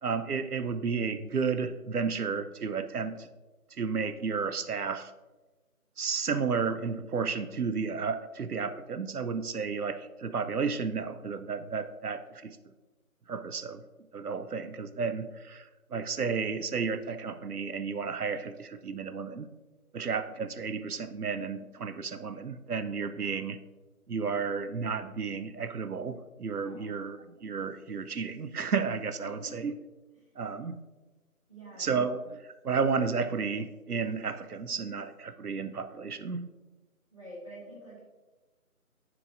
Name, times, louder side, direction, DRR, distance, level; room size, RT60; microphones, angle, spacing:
voice 1, 0.0-3.3 3.8-5.1 6.0-12.6 13.3-13.8 14.1-19.5 19.9-23.6 24.1-29.7 30.4-30.8 31.8-32.4 32.6-36.5, right 5 dB, 85° right, 10 dB, 0.7 m, -32 dB
voice 2, 26.6-27.1 29.2-29.7 30.1-30.3 31.5-31.9 37.1-38.0, equal, 20° right, -8 dB, 1.4 m, -48 dB
9.8 x 4.6 x 2.6 m, 1.2 s
figure-of-eight pair, 170°, 45 cm